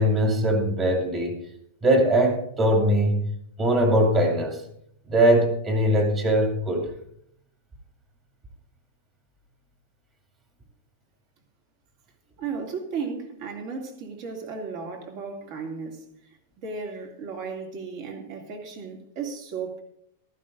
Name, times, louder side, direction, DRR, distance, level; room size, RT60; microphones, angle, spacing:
voice 1, 0.0-1.4 1.8-3.3 3.6-4.6 5.1-6.9, right 1 dB, 20° right, 2.5 m, -21 dB
voice 2, 12.4-16.3 16.6-19.8, right 5 dB, 45° right, 2.6 m, -35 dB
15.0 x 13.5 x 2.6 m
supercardioid pair, 155°, 0 cm